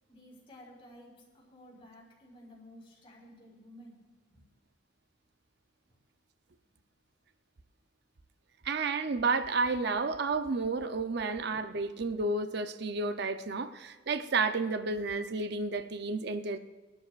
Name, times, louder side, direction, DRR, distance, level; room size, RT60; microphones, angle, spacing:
voice 1, 0.1-4.0 4.3-4.4 5.9-6.0, equal, 30° left, -4 dB, 5.1 m, -54 dB
voice 2, 8.6-16.6, right 3 dB, 60° right, 9 dB, 0.7 m, -31 dB
24.0 x 12.5 x 2.5 m, 1.3 s
head